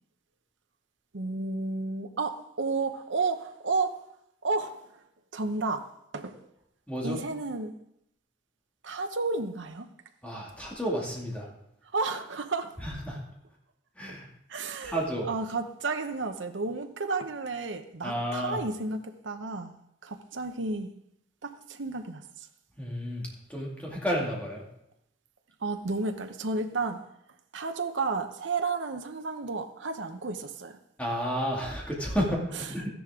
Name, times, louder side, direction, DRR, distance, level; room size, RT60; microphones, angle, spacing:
voice 1, 1.1-3.9 4.4-5.0 5.3-5.8 6.1-6.3 7.0-7.7 8.8-9.9 11.9-12.7 14.5-15.0 15.2-19.7 20.0-20.9 21.4-22.5 25.6-27.0 27.5-30.8 32.5-32.6, right 3 dB, 80° right, 0.9 m, -32 dB
voice 2, 6.9-7.2 10.2-11.5 12.8-13.2 14.0-14.3 14.8-15.3 18.0-18.6 22.8-24.6 31.0-32.9, equal, 5° left, 2.3 m, -31 dB
13.5 x 10.0 x 3.7 m
head